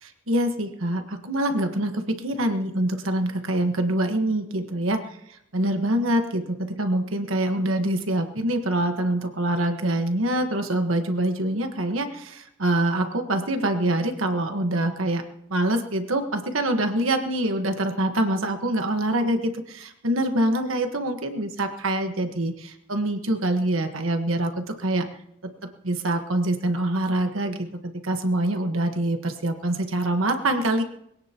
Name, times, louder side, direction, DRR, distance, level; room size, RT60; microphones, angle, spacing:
voice 1, 0.0-15.2 15.5-25.1 25.4-30.8, right 1 dB, 80° right, 6 dB, 1.4 m, -25 dB
21.5 x 17.5 x 3.0 m, 0.76 s
head